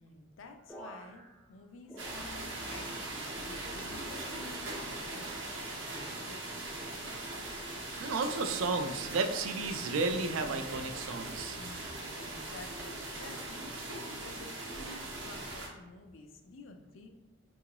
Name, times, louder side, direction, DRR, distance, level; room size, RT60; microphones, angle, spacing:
voice 1, 0.0-7.0 11.6-17.2, left 3 dB, 70° left, 5 dB, 0.4 m, -51 dB
sound 1, 0.7-2.9 3.2-4.0 4.5-5.2 5.9-6.3 7.2-7.6 8.5-8.8, right 1 dB, 10° left, 0.4 m, -53 dB
sound 2, 2.0-15.7, right 2 dB, 65° right, 0.8 m, -40 dB
voice 2, 8.0-11.6, right 3 dB, 80° right, 7 dB, 0.4 m, -33 dB
3.7 x 2.4 x 2.9 m, 1.1 s
head